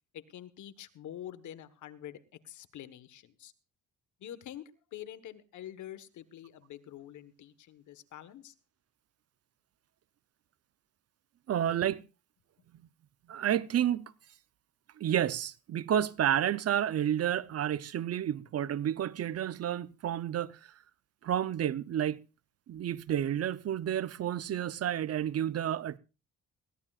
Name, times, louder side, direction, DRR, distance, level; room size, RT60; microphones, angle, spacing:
voice 1, 0.1-2.2 2.4-3.5 4.2-8.5, left 11 dB, 75° left, 1.4 m, -46 dB
voice 2, 11.5-12.0 13.3-14.1 15.0-20.7 21.2-22.2 22.7-26.0, right 10 dB, 55° right, 0.7 m, -30 dB
21.5 x 17.0 x 2.4 m
cardioid pair, 90°, 30 cm